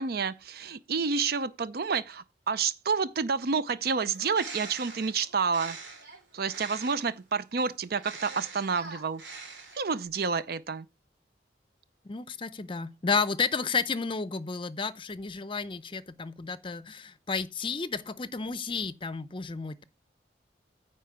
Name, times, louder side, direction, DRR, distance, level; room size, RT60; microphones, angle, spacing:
voice 1, 0.0-5.8 6.3-9.2 9.8-10.9, right 5 dB, 60° right, 0.6 m, -29 dB
Bird, 4.1-7.2 7.9-10.1, right 4 dB, 80° right, 2.9 m, -44 dB
voice 2, 12.0-19.8, left 4 dB, 30° left, 0.6 m, -32 dB
9.5 x 4.5 x 6.0 m
head